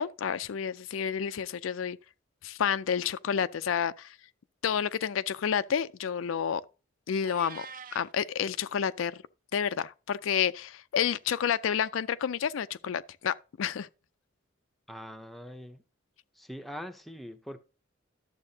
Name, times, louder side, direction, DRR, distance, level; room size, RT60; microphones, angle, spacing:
voice 1, 0.0-2.0 2.4-4.2 4.6-6.6 7.1-7.7 7.9-9.2 9.5-13.9, left 8 dB, 85° left, 0.4 m, -30 dB
Meow, 7.2-8.1, right 6 dB, 45° right, 0.5 m, -45 dB
voice 2, 14.9-15.8 16.3-17.6, equal, ahead, 0.6 m, -42 dB
11.5 x 7.4 x 2.7 m
head